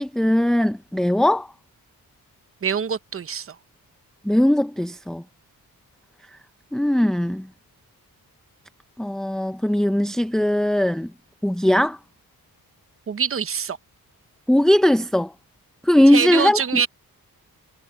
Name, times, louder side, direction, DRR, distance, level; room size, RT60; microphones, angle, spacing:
voice 1, 0.0-1.5 4.2-5.2 6.7-7.5 9.0-11.1 11.4-12.0 14.5-15.3 15.8-16.6, left 1 dB, ahead, 0.6 m, -19 dB
voice 2, 2.6-3.6 13.1-13.8 16.1-16.9, right 7 dB, 35° right, 0.8 m, -24 dB
wide cardioid pair, 100°, 36 cm